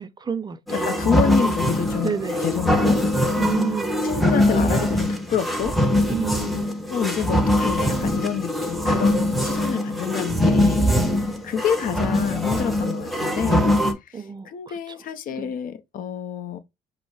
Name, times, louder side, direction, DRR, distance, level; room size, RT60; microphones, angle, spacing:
voice 1, 0.0-0.9 2.0-2.4 3.4-4.0 6.1-6.7 14.1-15.0 15.4-15.5, right 6 dB, 25° right, 0.4 m, -30 dB
voice 2, 0.7-2.1 2.4-3.0 4.0-5.8 6.9-13.7 14.1-16.6, left 8 dB, 55° left, 0.7 m, -28 dB
sound 1, 0.7-13.9, left 1 dB, ahead, 0.8 m, -22 dB
5.1 x 2.0 x 4.7 m
cardioid pair, 110°, 17 cm